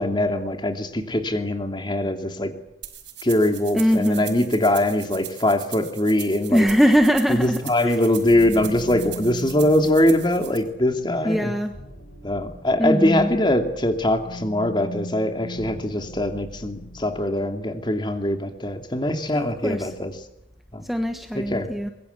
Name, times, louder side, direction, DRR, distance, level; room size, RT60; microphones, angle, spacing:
voice 1, 0.0-2.5 3.2-6.7 7.3-11.5 12.2-20.1 20.7-20.8 21.3-21.7, left 1 dB, 25° left, 6 dB, 2.7 m, -22 dB
sound 1, 2.8-10.6, right 12 dB, 75° right, 5.7 m, -40 dB
voice 2, 3.7-4.3 6.5-8.0 11.2-11.7 12.8-13.3 19.3-19.9 20.8-21.9, equal, ahead, 5 dB, 1.3 m, -21 dB
sound 2, 8.2-17.4, left 1 dB, 80° left, 7.1 m, -40 dB
24.5 x 22.5 x 8.3 m, 0.82 s
head